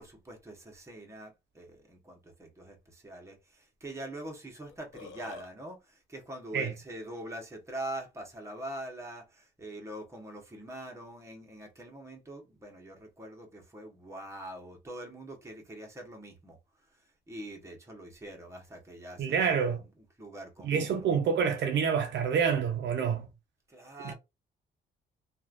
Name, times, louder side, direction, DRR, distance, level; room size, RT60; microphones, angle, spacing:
voice 1, 0.0-19.9 20.2-21.1 23.7-24.1, right 1 dB, 15° right, 1.1 m, -44 dB
Burping eructation, 4.7-5.5, left 4 dB, 70° left, 0.7 m, -46 dB
voice 2, 19.2-19.8 20.6-23.3 24.0-24.1, right 6 dB, 65° right, 0.6 m, -27 dB
3.0 x 2.5 x 2.5 m
cardioid pair, 90°, 20 cm